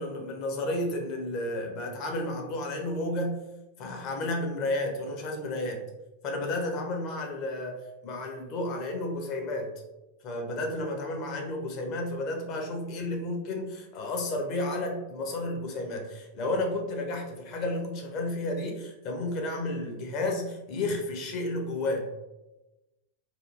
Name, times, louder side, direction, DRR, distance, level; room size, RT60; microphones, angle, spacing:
voice 1, 0.0-3.4 3.8-5.8 6.2-9.7 10.2-22.1, left 1 dB, 40° left, 2 dB, 0.6 m, -32 dB
2.9 x 2.5 x 2.4 m, 1.0 s
figure-of-eight pair, 90°, 0 cm